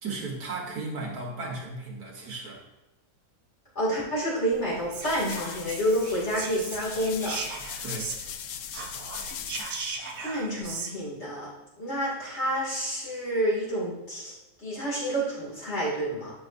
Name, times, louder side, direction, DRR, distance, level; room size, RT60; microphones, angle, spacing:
voice 1, 0.0-2.6 7.8-8.1, right 3 dB, 60° right, -1 dB, 1.9 m, -35 dB
voice 2, 3.7-7.4 10.2-11.5 11.8-14.3 14.6-16.3, equal, 40° left, -5 dB, 2.7 m, -29 dB
sound 1, 4.5-9.9, left 8 dB, 80° left, 0.7 m, -40 dB
Whispering, 4.9-8.4 8.7-10.9, right 4 dB, 85° right, 1.6 m, -37 dB
9.4 x 6.1 x 2.6 m, 0.98 s
omnidirectional pair, 1.8 m